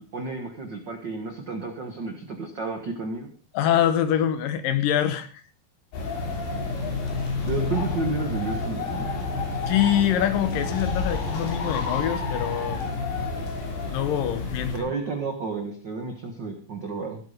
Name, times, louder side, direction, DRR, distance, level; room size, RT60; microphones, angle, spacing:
voice 1, 0.0-3.3 7.4-9.1 14.7-17.2, right 4 dB, 65° right, 4 dB, 1.0 m, -31 dB
voice 2, 3.5-5.4 9.7-12.8 13.9-14.9, left 10 dB, 70° left, 10 dB, 2.5 m, -24 dB
sound 1, 5.9-14.8, left 3 dB, 90° left, 5.4 m, -29 dB
15.5 x 8.2 x 5.1 m, 0.41 s
omnidirectional pair, 4.4 m